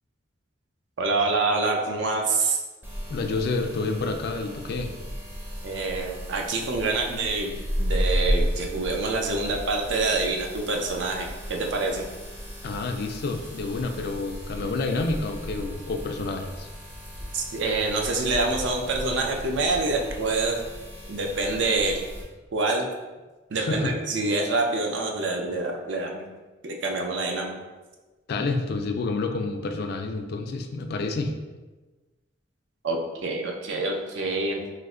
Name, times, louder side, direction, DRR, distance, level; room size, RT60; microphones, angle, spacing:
voice 1, 1.0-2.6 5.6-7.5 7.8-12.0 17.3-20.6 21.1-22.0 22.5-22.9 23.5-26.2 26.6-27.5 32.8-34.7, right 3 dB, 70° right, 1 dB, 0.5 m, -26 dB
sound 1, 2.8-22.2, equal, 10° right, 0.5 m, -34 dB
voice 2, 3.1-4.9 12.6-16.7 23.5-23.9 28.3-31.3, left 3 dB, 55° left, 5 dB, 0.3 m, -29 dB
3.1 x 2.0 x 3.6 m, 1.2 s
head